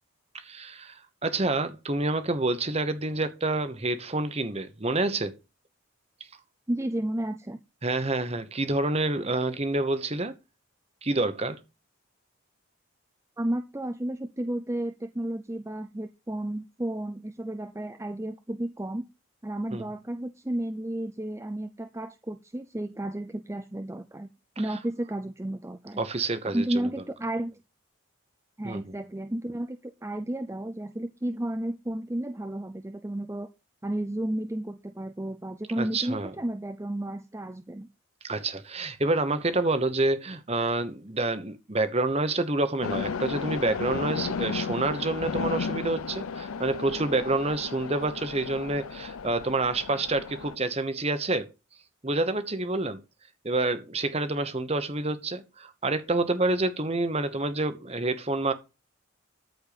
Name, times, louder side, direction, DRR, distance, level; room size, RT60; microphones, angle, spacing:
voice 1, 0.3-5.4 7.8-10.4 11.0-11.6 19.7-19.8 24.7-24.8 26.0-26.9 28.6-28.9 35.8-36.3 38.2-51.5 52.0-53.0 53.4-58.5, right 2 dB, 30° right, 1.1 m, -28 dB
voice 2, 6.7-7.6 13.4-19.1 19.4-24.3 24.6-26.0 26.4-27.6 28.6-33.5 33.8-37.9, right 1 dB, 15° right, 0.5 m, -32 dB
sound 1, 42.8-50.6, left 5 dB, 85° left, 0.6 m, -34 dB
13.5 x 4.5 x 6.8 m
head